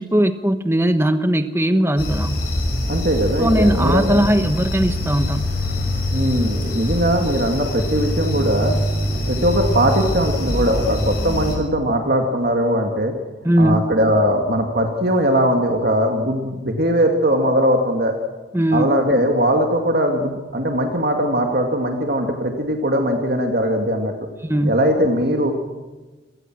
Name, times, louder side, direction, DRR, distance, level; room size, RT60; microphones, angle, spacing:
voice 1, 0.0-2.4 3.4-5.4 13.4-13.9 18.5-18.9 24.4-24.8, right 1 dB, 15° right, 9 dB, 1.1 m, -19 dB
sound 1, 2.0-11.5, equal, 55° left, 6.2 m, -23 dB
voice 2, 2.9-4.2 6.1-8.8 9.3-13.1 13.6-18.1 18.7-24.1 24.7-25.5, equal, 55° right, 2 dB, 2.2 m, -20 dB
27.0 x 18.5 x 6.2 m, 1.2 s
head